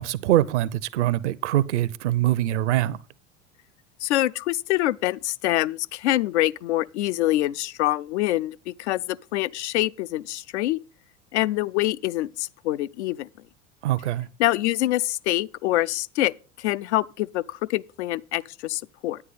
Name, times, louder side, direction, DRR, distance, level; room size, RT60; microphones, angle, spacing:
voice 1, 0.0-3.0 13.8-14.3, right 13 dB, 65° right, 0.7 m, -23 dB
voice 2, 4.0-10.8 11.3-13.3 14.4-19.2, left 15 dB, 65° left, 0.5 m, -25 dB
9.8 x 9.6 x 4.0 m
figure-of-eight pair, 80°, 38 cm